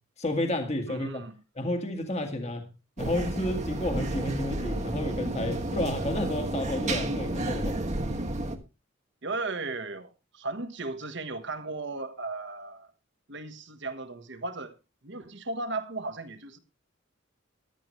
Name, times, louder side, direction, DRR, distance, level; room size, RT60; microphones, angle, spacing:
voice 1, 0.2-1.2 1.6-2.6 3.0-7.8, left 1 dB, 35° left, 1.8 m, -31 dB
voice 2, 0.9-1.4 9.2-12.9 13.3-14.7 15.0-16.6, right 3 dB, 60° right, 1.4 m, -36 dB
sound 1, 3.0-8.6, right 1 dB, 35° right, 1.3 m, -31 dB
14.5 x 12.0 x 3.2 m
head